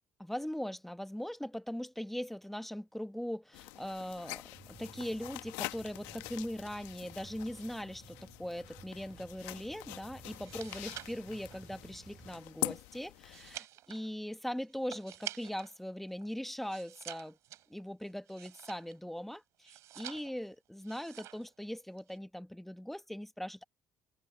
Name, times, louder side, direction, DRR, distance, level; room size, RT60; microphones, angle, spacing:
voice 1, 0.2-17.4 17.7-23.7, equal, 5° left, 1.2 m, -40 dB
sound 1, 3.5-13.6, left 19 dB, 90° left, 1.1 m, -45 dB
sound 2, 4.5-12.4, right 5 dB, 35° right, 6.8 m, -56 dB
sound 3, 10.3-15.8 16.1-19.1 19.6-20.5 20.8-21.5 21.8-22.2, right 14 dB, 75° right, 6.5 m, -48 dB
supercardioid pair, 65°, 5 cm